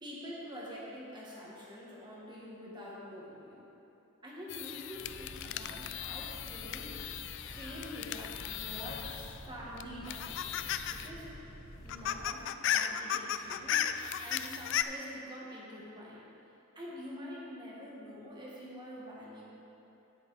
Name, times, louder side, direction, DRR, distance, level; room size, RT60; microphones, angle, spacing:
voice 1, 0.0-3.6 4.2-6.9 7.4-11.3 11.8-16.3 16.8-19.4, equal, 20° right, -5 dB, 1.6 m, -46 dB
sound 1, 4.5-9.4 9.8-11.1 11.4-11.5 11.8-14.8, left 10 dB, 55° left, 0.3 m, -36 dB
sound 2, 4.9-12.2, equal, 80° left, 1.8 m, -49 dB
11.0 x 7.6 x 4.2 m, 3.0 s
head